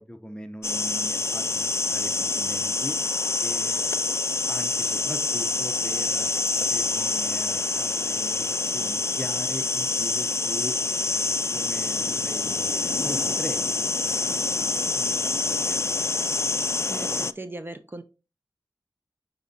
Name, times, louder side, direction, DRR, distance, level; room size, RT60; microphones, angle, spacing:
voice 1, 0.0-3.0 3.4-3.9 4.5-10.8 11.1-15.9, equal, 10° left, 9 dB, 0.7 m, -40 dB
sound 1, 0.6-17.3, left 3 dB, 35° left, 0.3 m, -26 dB
voice 2, 16.9-18.0, right 2 dB, 30° right, 10 dB, 0.5 m, -38 dB
9.1 x 4.2 x 2.7 m, 0.30 s
wide cardioid pair, 45°, 8 cm